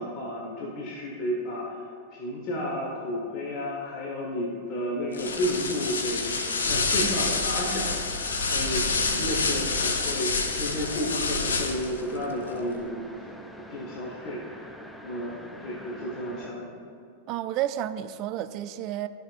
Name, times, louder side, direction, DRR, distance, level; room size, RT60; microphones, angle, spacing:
voice 1, 0.0-6.4 6.6-13.3 13.7-14.7 15.0-16.7, equal, 40° left, -2 dB, 1.2 m, -32 dB
sound 1, 5.1-12.0, left 4 dB, 70° left, 0.6 m, -27 dB
sound 2, 5.2-16.5, equal, 5° left, 0.6 m, -45 dB
voice 2, 17.3-19.1, right 12 dB, 40° right, 11 dB, 0.4 m, -31 dB
13.5 x 5.2 x 2.5 m, 2.6 s
figure-of-eight pair, 90°, 0 cm